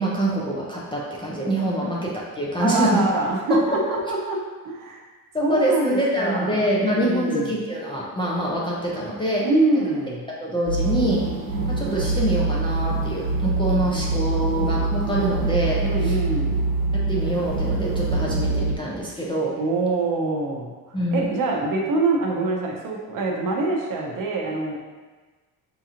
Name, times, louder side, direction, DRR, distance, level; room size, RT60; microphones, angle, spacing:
voice 1, 0.0-3.0 3.5-3.8 5.3-9.5 10.4-11.2 11.7-16.2 16.9-19.5 20.9-21.3, right 1 dB, 15° left, -5 dB, 0.3 m, -25 dB
voice 2, 2.6-5.1 5.4-7.5 9.4-10.2 15.8-16.6 19.6-24.8, right 2 dB, 60° right, 0 dB, 0.7 m, -25 dB
sound 1, 10.7-18.8, right 3 dB, 90° right, 0.9 m, -24 dB
5.3 x 2.9 x 2.4 m, 1.3 s
cardioid pair, 170°, 37 cm